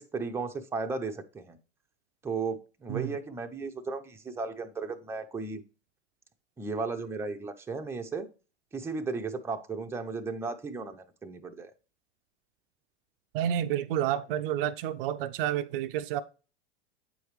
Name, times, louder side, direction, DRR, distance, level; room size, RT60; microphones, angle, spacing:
voice 1, 0.0-1.6 2.2-5.6 6.6-8.3 8.7-11.7, right 4 dB, 5° right, 0.6 m, -35 dB
voice 2, 13.3-16.2, right 11 dB, 55° right, 0.5 m, -30 dB
8.2 x 4.7 x 3.2 m
hypercardioid pair, 100°, 34 cm